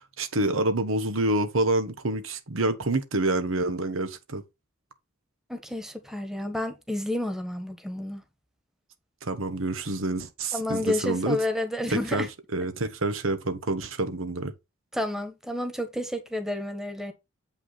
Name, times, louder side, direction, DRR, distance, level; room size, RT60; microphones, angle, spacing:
voice 1, 0.0-4.4 9.2-11.4 11.9-12.3 12.5-14.5, right 2 dB, 90° right, 1.3 m, -27 dB
voice 2, 5.5-8.2 10.5-12.3 14.9-17.1, left 1 dB, ahead, 1.4 m, -30 dB
7.7 x 5.9 x 4.1 m
head